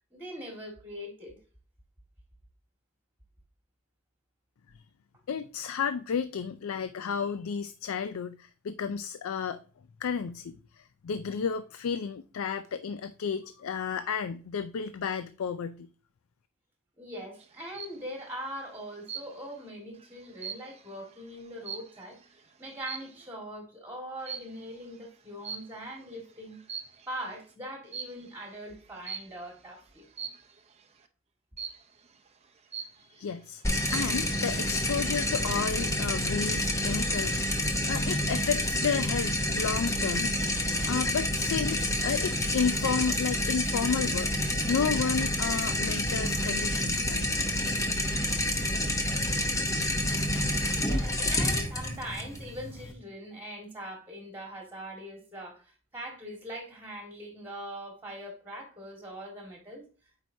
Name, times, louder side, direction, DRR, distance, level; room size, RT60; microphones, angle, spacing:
voice 1, 0.1-1.4 17.0-22.2 22.6-26.6 27.1-30.3 50.7-59.9, equal, 10° right, 1.7 m, -42 dB
voice 2, 5.3-9.6 10.0-15.9 33.0-33.6 33.9-44.3 44.7-47.3, left 6 dB, 65° left, 0.4 m, -32 dB
sound 1, 17.4-18.0 19.1-19.6 20.0-22.2 22.8-23.2 24.2-24.6 25.4-26.0 26.5-27.2 27.9-28.3 29.1-29.5 30.2-30.6 31.6-32.0 32.4-32.5 32.7-33.3 33.7-34.2, right 7 dB, 30° right, 0.6 m, -40 dB
sound 2, 33.6-52.9, left 1 dB, 15° left, 0.8 m, -28 dB
8.6 x 4.7 x 2.7 m
head